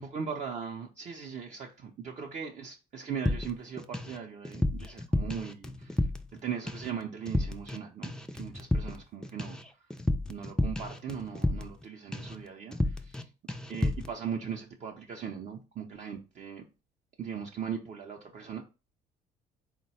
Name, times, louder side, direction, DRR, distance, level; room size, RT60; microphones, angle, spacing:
voice 1, 0.0-6.1 6.3-9.6 10.3-13.2 13.7-16.6 17.2-18.6, right 7 dB, 45° right, 0.5 m, -39 dB
sound 1, 3.3-4.2 4.4-6.4 6.7-7.0 7.3-7.8 8.0-11.8 12.1-12.4 12.7-13.2 13.5-14.1, left 1 dB, 5° left, 0.3 m, -31 dB
3.9 x 2.1 x 4.1 m
cardioid pair, 110°, 17 cm